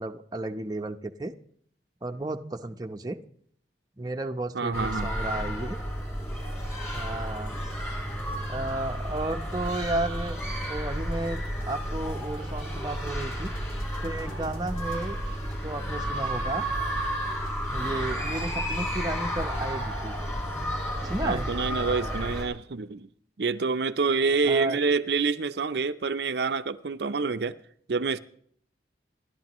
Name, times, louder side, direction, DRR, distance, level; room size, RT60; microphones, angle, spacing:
voice 1, 0.0-1.3 2.0-3.2 4.0-5.8 6.9-7.6 8.5-13.5 14.0-16.7 17.7-20.2 21.0-21.5 24.4-24.8, right 2 dB, 20° right, 0.8 m, -33 dB
voice 2, 4.5-5.1 21.2-23.1 23.4-27.5 27.9-28.2, right 4 dB, 70° right, 0.6 m, -27 dB
sound 1, 4.7-22.4, equal, 15° left, 4.9 m, -32 dB
sound 2, 7.3-22.4, left 1 dB, 50° left, 2.1 m, -50 dB
27.5 x 11.5 x 3.0 m
head